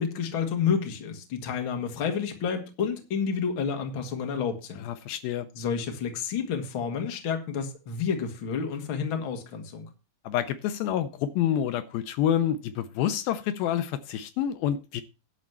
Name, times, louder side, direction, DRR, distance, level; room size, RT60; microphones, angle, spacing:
voice 1, 0.0-4.8 5.6-9.9, left 6 dB, 45° left, 1.9 m, -30 dB
voice 2, 4.8-5.5 10.2-15.0, left 10 dB, 80° left, 2.4 m, -28 dB
11.5 x 4.2 x 7.8 m
omnidirectional pair, 4.3 m